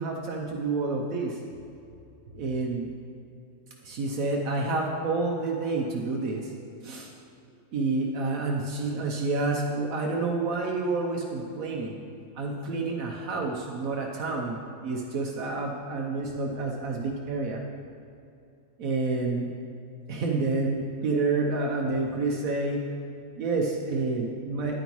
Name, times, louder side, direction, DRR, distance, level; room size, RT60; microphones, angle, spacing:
voice 1, 0.0-1.4 2.3-2.9 3.8-6.5 6.8-7.1 7.7-12.0 12.3-14.6 14.8-17.6 18.8-19.5 20.1-22.9 23.4-24.7, right 3 dB, 80° right, 0 dB, 1.2 m, -29 dB
9.9 x 9.1 x 3.1 m, 2.6 s
omnidirectional pair, 1.5 m